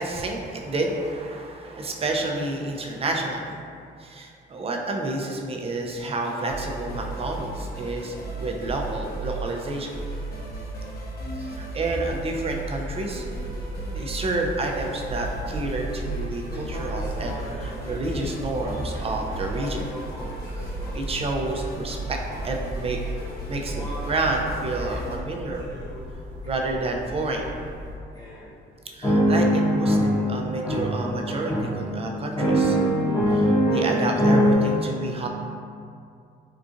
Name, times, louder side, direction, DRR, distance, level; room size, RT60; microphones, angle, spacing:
voice 1, 0.0-3.6 4.0-10.1 11.4-13.2 13.9-19.9 20.9-22.2 22.4-23.2 23.5-25.7 26.4-27.4 28.9-32.8 33.3-35.3, right 2 dB, 30° right, 1 dB, 0.4 m, -29 dB
sound 1, 6.2-25.2, right 2 dB, 50° left, 0.7 m, -35 dB
sound 2, 13.0-28.0, equal, 75° right, 0.8 m, -39 dB
sound 3, 16.1-16.2 16.5-20.9 22.2-22.4 23.0-23.3 23.7-24.2 24.8-25.1 25.7-26.0 26.6-26.7 27.4-27.5 28.2-28.3 29.0-34.6, equal, 20° left, 0.9 m, -24 dB
3.8 x 2.4 x 2.5 m, 2.4 s
cardioid pair, 90°, 20 cm